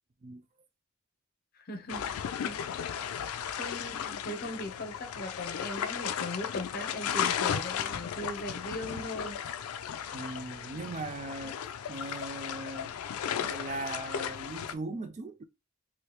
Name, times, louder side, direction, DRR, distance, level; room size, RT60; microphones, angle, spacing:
voice 1, 1.6-2.6 3.6-9.4, left 1 dB, 45° left, 0.7 m, -39 dB
sound 1, 1.9-14.7, left 8 dB, 90° left, 0.3 m, -35 dB
voice 2, 10.1-11.6 11.9-12.9 13.4-15.4, right 2 dB, 35° right, 0.3 m, -39 dB
3.2 x 2.6 x 3.0 m
head